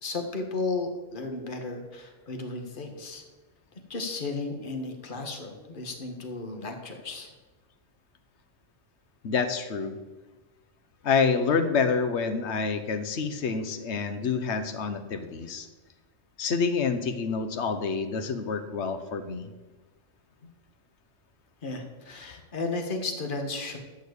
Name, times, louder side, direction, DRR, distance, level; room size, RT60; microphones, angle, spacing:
voice 1, 0.0-3.2 3.9-7.3 21.6-23.8, left 3 dB, 45° left, 3 dB, 1.6 m, -34 dB
voice 2, 9.2-10.0 11.0-15.7 16.4-19.5, left 5 dB, 65° left, 9 dB, 1.2 m, -27 dB
13.5 x 4.6 x 8.1 m, 1.2 s
omnidirectional pair, 1.3 m